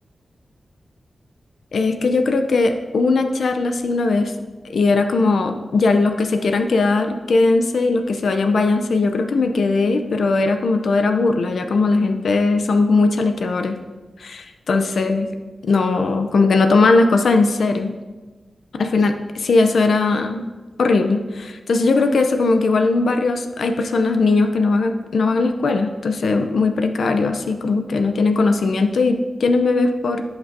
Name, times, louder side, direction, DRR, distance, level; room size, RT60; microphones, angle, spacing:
voice 1, 1.7-4.3 4.7-13.8 14.2-15.3 15.6-17.9 18.8-20.5 20.8-30.2, left 3 dB, 70° left, 6 dB, 0.6 m, -19 dB
16.0 x 6.0 x 2.7 m, 1.3 s
wide cardioid pair, 165°, 0 cm